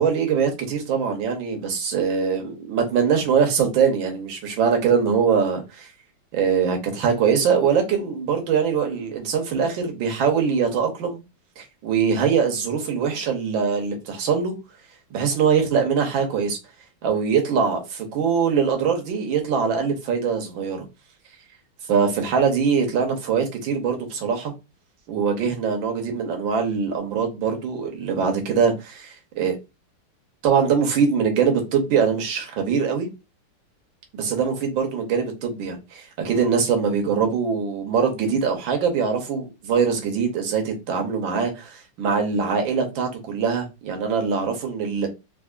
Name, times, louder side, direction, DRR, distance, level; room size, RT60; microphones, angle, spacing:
voice 1, 0.0-5.9 6.3-11.2 11.6-14.5 15.1-16.6 17.0-20.9 21.9-24.5 25.1-29.5 30.4-33.1 34.1-45.1, right 6 dB, 70° right, 1.5 m, -22 dB
3.7 x 2.8 x 2.4 m
omnidirectional pair, 2.4 m